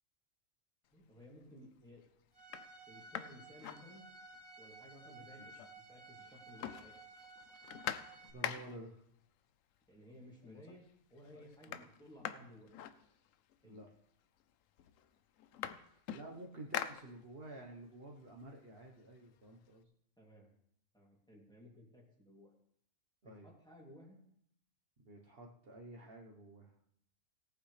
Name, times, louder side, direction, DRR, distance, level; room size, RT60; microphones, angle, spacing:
voice 1, 0.9-2.0 2.9-4.0 4.6-6.9 9.9-10.8 11.1-12.7 13.6-13.8 20.2-20.5 20.9-22.5 23.2-24.2, equal, 5° left, -3 dB, 2.8 m, -57 dB
sound 1, 1.0-1.4 2.0-2.1 2.4-4.5 4.8-4.9 5.1-6.0 6.2-9.0 9.9-10.0 10.4-10.9 11.2-13.6 14.4-14.5 14.8-17.6 18.0-19.7, left 10 dB, 80° left, 1.0 m, -45 dB
Bowed string instrument, 2.3-8.3, right 2 dB, 25° right, 2.6 m, -55 dB
voice 2, 8.3-9.0 11.7-11.8 13.6-13.9 15.9-19.8 23.2-23.5 25.0-26.7, right 1 dB, 50° right, -1 dB, 1.4 m, -51 dB
18.0 x 8.5 x 3.3 m, 0.70 s
omnidirectional pair, 1.3 m